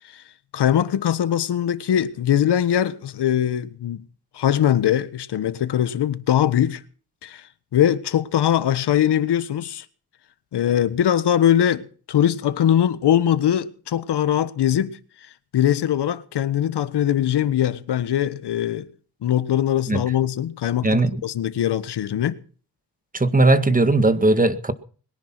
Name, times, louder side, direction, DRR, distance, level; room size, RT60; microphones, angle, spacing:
voice 1, 0.5-4.0 4.3-6.8 7.2-7.4 7.7-9.8 10.5-15.0 15.5-18.9 19.2-22.4, left 10 dB, 85° left, 1.4 m, -21 dB
voice 2, 20.8-21.2 23.1-24.7, right 2 dB, 20° right, 1.9 m, -18 dB
21.5 x 10.5 x 6.1 m
cardioid pair, 70°, 40 cm